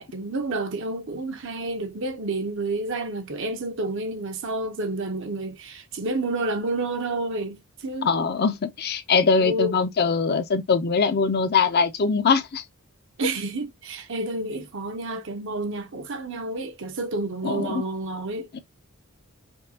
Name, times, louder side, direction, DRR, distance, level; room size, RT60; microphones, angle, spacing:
voice 1, 0.0-8.1 9.4-9.8 13.2-18.5, right 2 dB, 55° right, 0.8 m, -29 dB
voice 2, 8.0-12.6 17.4-17.8 18.5-18.6, left 5 dB, 45° left, 0.5 m, -22 dB
5.3 x 2.3 x 2.7 m
head